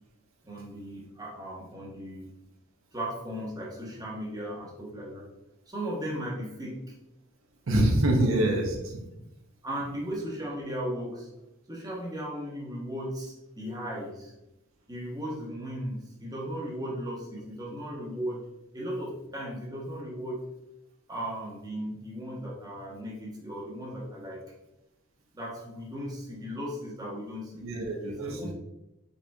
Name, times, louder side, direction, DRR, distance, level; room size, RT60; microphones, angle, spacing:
voice 1, 0.4-2.3 2.9-5.3 5.7-6.9 8.3-8.7 9.6-11.3 11.7-14.3 14.9-18.4 18.7-20.4 21.1-24.4 25.3-27.7 28.1-28.5, equal, 20° right, -3 dB, 1.0 m, -36 dB
voice 2, 7.7-8.7 27.6-28.5, right 1 dB, 75° right, 1 dB, 0.8 m, -25 dB
5.4 x 4.0 x 2.3 m, 0.90 s
head